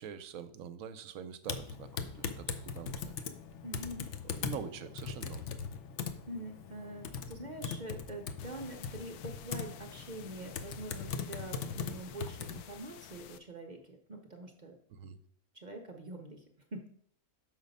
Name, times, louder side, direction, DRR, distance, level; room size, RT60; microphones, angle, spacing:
voice 1, 0.0-3.2 4.2-5.5 14.9-15.2, right 8 dB, 70° right, 10 dB, 0.9 m, -45 dB
Typing, 1.4-12.6, left 6 dB, 60° left, 0.8 m, -40 dB
voice 2, 3.6-4.5 6.2-14.8 15.5-16.9, right 1 dB, 50° right, 3 dB, 0.5 m, -45 dB
sound 1, 8.4-13.4, left 8 dB, 85° left, 1.1 m, -52 dB
6.3 x 4.9 x 5.3 m, 0.65 s
omnidirectional pair, 1.6 m